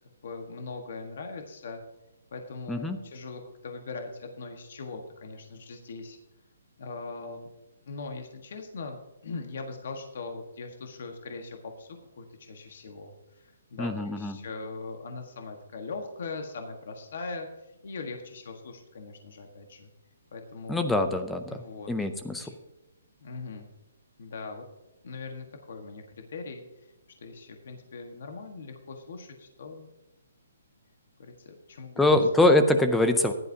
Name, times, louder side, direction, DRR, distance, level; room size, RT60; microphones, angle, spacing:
voice 1, 0.0-1.8 2.3-6.2 6.8-7.5 7.8-11.9 12.2-19.9 20.3-21.0 21.5-21.9 22.4-22.5 23.2-23.7 24.2-24.6 25.0-26.9 27.2-29.9 31.2-32.3, left 3 dB, 50° left, 4 dB, 1.4 m, -40 dB
voice 2, 13.8-14.3 20.7-21.6 21.9-22.5 32.0-33.3, left 2 dB, 5° left, 7 dB, 0.5 m, -23 dB
15.0 x 11.0 x 2.8 m, 0.96 s
hypercardioid pair, 175°, 0 cm